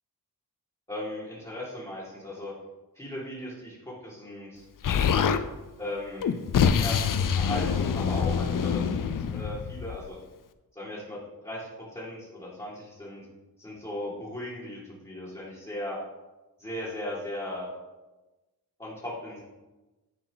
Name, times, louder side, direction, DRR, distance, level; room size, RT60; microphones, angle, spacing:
voice 1, 0.9-2.5 3.0-4.6 5.8-6.3 6.8-10.2 10.8-13.2 13.6-16.0 16.6-17.7 18.8-19.4, left 1 dB, 15° left, -8 dB, 2.0 m, -37 dB
Explosion, 4.8-5.4 6.2-10.1, left 7 dB, 55° left, 0.5 m, -25 dB
10.5 x 4.5 x 3.9 m, 1.1 s
wide cardioid pair, 120°, 39 cm